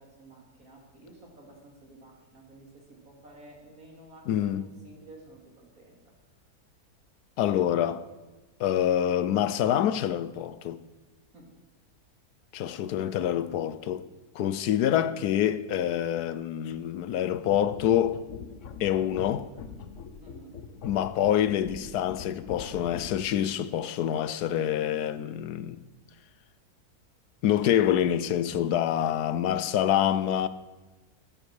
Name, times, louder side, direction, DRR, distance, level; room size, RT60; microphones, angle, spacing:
voice 1, 0.0-6.0 11.3-11.5 20.2-20.6, right 2 dB, 65° right, 3.8 m, -52 dB
voice 2, 4.3-4.7 7.4-8.0 8.6-10.8 12.5-14.1 14.3-18.2 18.8-19.5 20.8-25.8 27.4-30.5, left 10 dB, 85° left, 1.3 m, -26 dB
sound 1, 17.3-23.5, left 6 dB, 55° left, 1.1 m, -43 dB
14.5 x 13.5 x 4.8 m
omnidirectional pair, 1.6 m